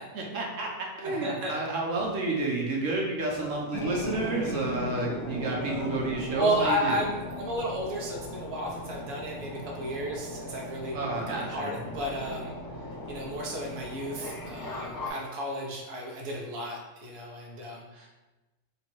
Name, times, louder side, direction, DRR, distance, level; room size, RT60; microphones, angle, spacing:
voice 1, 0.1-7.0 10.9-11.7, right 2 dB, 90° right, -1 dB, 1.1 m, -30 dB
voice 2, 1.0-1.6 6.3-12.5 13.1-18.1, equal, 55° right, -2 dB, 1.0 m, -33 dB
Burping eructation, 1.6-1.7 2.0-2.2 2.9-3.0 3.3-3.8 5.2-5.3 5.7-6.0, left 2 dB, 90° left, 1.0 m, -43 dB
sound 1, 3.7-15.1, left 1 dB, 35° left, 0.3 m, -38 dB
3.3 x 2.9 x 4.4 m, 1.1 s
omnidirectional pair, 1.3 m